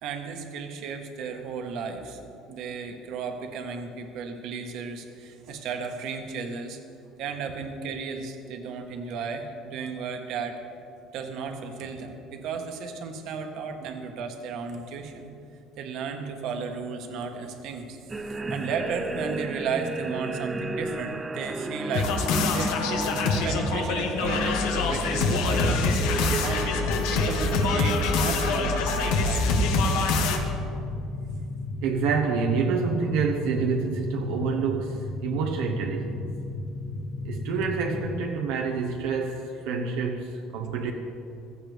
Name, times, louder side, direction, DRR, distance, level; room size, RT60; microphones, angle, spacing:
voice 1, 0.0-2.2 2.5-6.8 7.2-10.6 11.1-15.3 15.8-22.7 23.3-29.6, right 5 dB, 55° right, 4 dB, 1.4 m, -34 dB
sound 1, 18.1-30.8, right 2 dB, 15° right, 0.4 m, -34 dB
sound 2, 21.9-30.4, left 3 dB, 85° left, 1.4 m, -25 dB
sound 3, 29.8-38.3, left 2 dB, 25° left, 1.7 m, -34 dB
voice 2, 31.8-36.3 37.2-40.9, right 5 dB, 85° right, 1 dB, 1.0 m, -28 dB
15.5 x 15.0 x 3.4 m, 2.5 s
cardioid pair, 160°, 0 cm